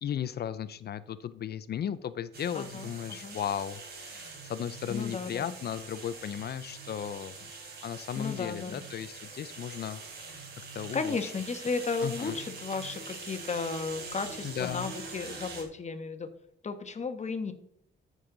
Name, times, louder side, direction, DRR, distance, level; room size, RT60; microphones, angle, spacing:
voice 1, 0.0-7.5 7.8-10.0 10.3-10.4 10.7-11.3 12.0-12.4 14.4-14.9, left 9 dB, 55° left, 15 dB, 0.6 m, -36 dB
Electric Toothbrush Braun Oral B, 2.3-15.6, right 4 dB, 55° right, 3.9 m, -44 dB
voice 2, 2.5-3.4 4.9-5.5 8.2-8.8 10.9-16.3 16.6-17.5, left 4 dB, 35° left, 8 dB, 1.4 m, -34 dB
14.0 x 6.5 x 4.0 m, 0.73 s
cardioid pair, 90°, 20 cm